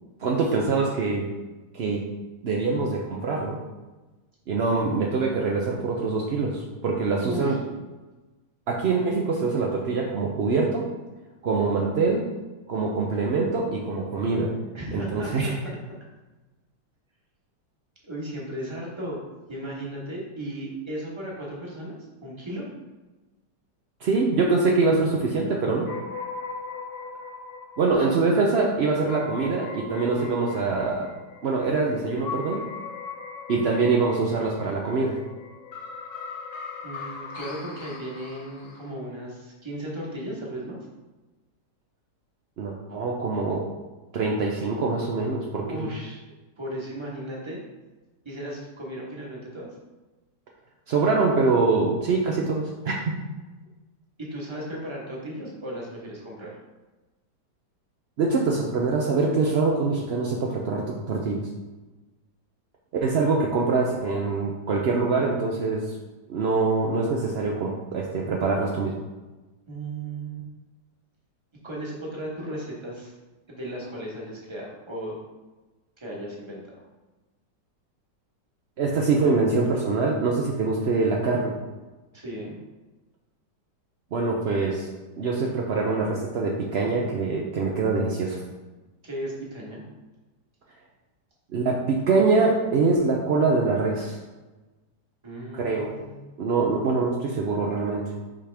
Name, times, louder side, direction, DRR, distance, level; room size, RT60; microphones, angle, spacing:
voice 1, 0.2-1.3 1.7-2.0 2.4-3.6 4.5-7.6 8.7-10.9 11.4-12.3 12.7-14.5 14.9-15.6 24.0-25.9 27.8-31.1 31.4-32.6 33.5-35.2 42.6-43.7 44.1-45.9 50.9-52.9 58.2-61.4 63.0-66.0 66.3-68.9 78.8-81.6 84.1-84.9 85.2-88.4 91.5-94.2 95.5-96.0 96.4-98.0, right 4 dB, 65° right, -2 dB, 0.6 m, -24 dB
voice 2, 7.2-7.6 14.7-15.8 18.0-19.2 19.5-21.9 22.2-22.6 27.9-28.0 36.8-40.8 45.6-47.6 48.2-49.7 54.2-56.5 69.7-70.5 71.6-73.1 73.5-75.2 76.0-76.8 82.1-82.6 89.0-89.8 95.2-96.2, right 1 dB, 20° right, -4 dB, 1.1 m, -35 dB
sound 1, 25.8-38.9, left 5 dB, 65° left, 1.4 m, -39 dB
5.6 x 5.0 x 3.4 m, 1.2 s
omnidirectional pair, 1.8 m